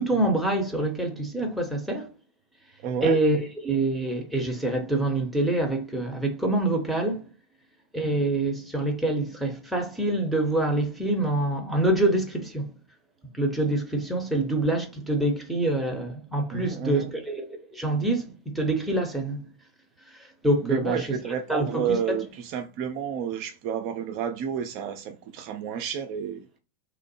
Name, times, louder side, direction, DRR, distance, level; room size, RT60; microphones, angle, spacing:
voice 1, 0.0-2.1 3.0-7.3 7.9-12.7 13.4-19.5 20.4-21.1 21.5-22.2, right 2 dB, 5° right, 0.7 m, -26 dB
voice 2, 2.8-3.2 16.5-17.1 20.6-26.5, right 7 dB, 45° right, 0.3 m, -31 dB
2.9 x 2.0 x 3.0 m
figure-of-eight pair, 90°, 0 cm